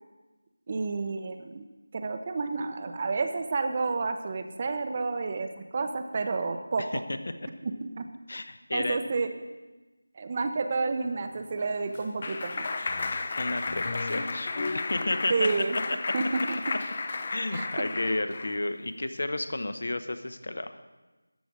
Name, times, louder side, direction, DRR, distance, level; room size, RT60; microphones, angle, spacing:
voice 1, 0.7-1.7 1.9-6.9 7.6-8.0 8.7-9.3 10.2-12.7 15.3-15.8 16.1-16.6 17.5-17.9, right 4 dB, 30° right, 7 dB, 0.6 m, -30 dB
voice 2, 8.3-9.0 13.4-14.5 14.9-15.5 15.9-16.0 17.3-20.8, left 2 dB, 60° left, 10 dB, 0.9 m, -31 dB
Clapping, 11.4-18.6, left 3 dB, 35° left, 0.6 m, -33 dB
13.5 x 5.0 x 7.2 m, 1.2 s
figure-of-eight pair, 170°, 0 cm